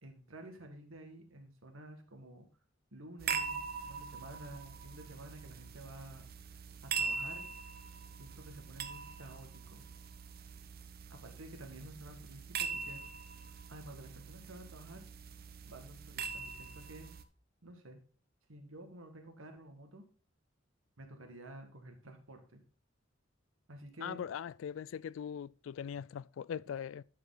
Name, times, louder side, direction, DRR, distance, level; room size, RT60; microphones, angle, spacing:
voice 1, 0.0-2.5 2.9-6.2 6.8-7.5 8.2-9.8 11.1-13.0 13.7-15.0 15.6-17.1 17.6-18.0 18.5-20.1 21.0-22.6 23.7-24.2, right 1 dB, 85° right, 1.9 m, -51 dB
sound 1, 3.2-17.2, right 6 dB, 50° right, 0.8 m, -42 dB
voice 2, 24.0-27.0, left 8 dB, 70° left, 0.3 m, -41 dB
11.0 x 5.0 x 3.9 m
head